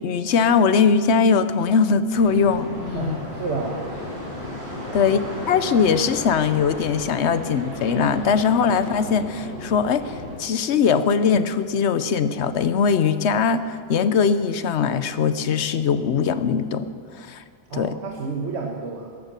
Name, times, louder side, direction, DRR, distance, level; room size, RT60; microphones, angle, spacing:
voice 1, 0.0-3.2 4.9-5.2 5.5-17.4 17.7-17.9, left 6 dB, 75° left, 12 dB, 1.0 m, -21 dB
sound 1, 2.1-10.4, left 1 dB, 50° right, 5.5 m, -34 dB
voice 2, 2.9-3.8 4.9-5.1 17.7-19.1, right 4 dB, 70° right, 1 dB, 1.5 m, -30 dB
13.5 x 10.5 x 7.4 m, 2.2 s
omnidirectional pair, 1.2 m